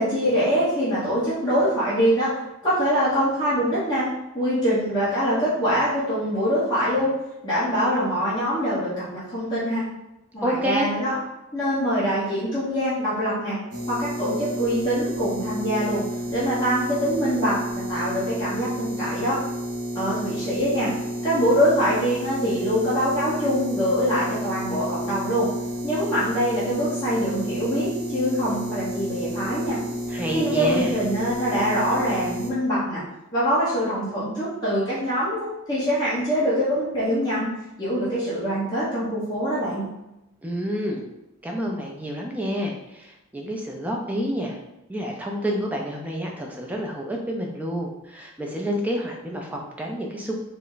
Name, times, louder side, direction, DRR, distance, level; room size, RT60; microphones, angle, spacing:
voice 1, 0.0-2.3 2.6-4.1 4.3-7.1 7.4-9.8 10.3-11.1 11.5-13.6 13.9-16.0 16.3-17.5 17.9-19.4 19.9-20.9 21.2-25.5 25.8-29.8 30.3-33.0 33.3-37.5 37.8-39.8, equal, 20° left, -11 dB, 0.9 m, -24 dB
voice 2, 10.4-10.9 30.1-30.9 40.4-41.0 41.4-44.6 44.9-50.3, equal, 5° right, 0 dB, 0.3 m, -28 dB
sound 1, 13.7-32.5, equal, 75° right, 0.9 m, -31 dB
3.3 x 2.0 x 3.8 m, 0.91 s
head